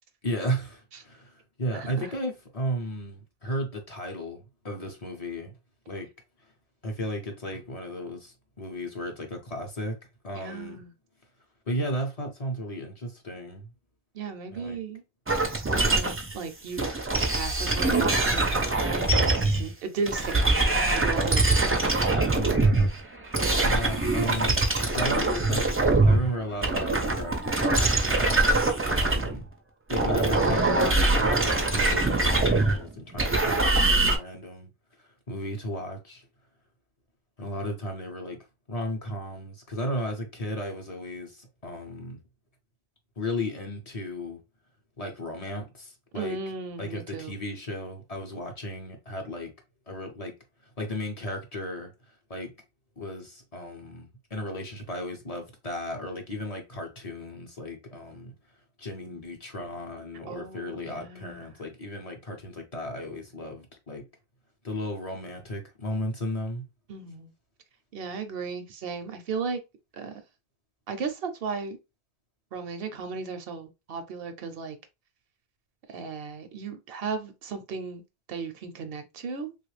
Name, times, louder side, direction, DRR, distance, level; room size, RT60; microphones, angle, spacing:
voice 1, 0.2-5.5 5.9-6.1 6.4-6.5 6.8-10.0 10.2-10.8 11.7-13.7 14.5-14.8 22.3-22.7 23.6-29.5 29.9-36.2 37.4-42.2 43.2-44.4 45.0-46.4 46.8-49.5 49.9-50.4 50.6-52.5 53.0-58.3 58.8-64.0 64.6-66.6, equal, 40° left, 0.8 m, -35 dB
voice 2, 1.7-2.0 10.4-10.9 14.1-15.0 15.6-16.9 17.3-21.7 23.4-23.7 46.1-47.3 60.3-61.5 66.9-67.3 67.9-69.6 69.9-70.2 70.9-71.8 72.5-74.8 75.9-78.0 78.3-79.5, right 5 dB, 70° right, 0.8 m, -35 dB
sound 1, 15.3-16.3 16.8-19.7 20.1-26.3 26.5-29.5 29.9-34.2, right 2 dB, 20° right, 0.3 m, -23 dB
3.2 x 2.4 x 3.1 m
omnidirectional pair, 1.0 m